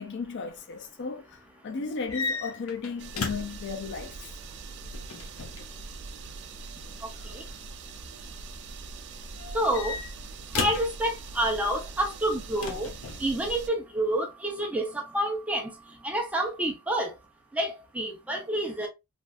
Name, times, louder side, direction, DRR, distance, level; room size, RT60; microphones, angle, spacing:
voice 1, 0.0-4.3, left 4 dB, 55° left, 0.4 m, -35 dB
sound 1, 2.0-3.7 4.9-5.7 7.2-7.6 9.4-11.0 12.6-13.3, left 4 dB, 75° left, 0.8 m, -35 dB
sound 2, 3.0-13.7, right 4 dB, 55° right, 0.4 m, -42 dB
voice 2, 9.5-10.0 10.5-12.9 13.2-15.7 16.0-17.1 17.5-18.9, right 1 dB, 5° right, 0.7 m, -28 dB
3.3 x 2.5 x 2.4 m
head